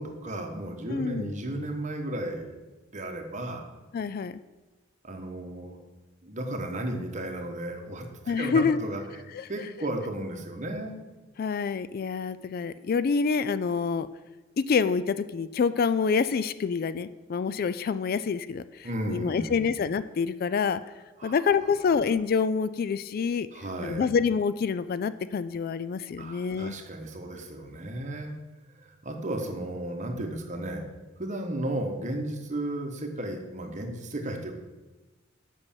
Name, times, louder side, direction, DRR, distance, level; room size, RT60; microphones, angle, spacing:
voice 1, 0.0-2.5 2.9-3.7 5.0-5.8 6.2-9.0 9.5-10.9 18.8-19.7 21.2-21.4 23.5-24.1 26.2-28.3 28.8-30.8 31.2-34.5, right 1 dB, 35° right, 3 dB, 1.2 m, -34 dB
voice 2, 0.9-1.3 3.9-4.3 8.3-8.8 9.3-9.5 11.4-14.1 14.6-20.8 21.2-23.5 23.8-26.7, left 5 dB, 45° left, 14 dB, 0.3 m, -27 dB
8.0 x 5.5 x 7.2 m, 1.2 s
head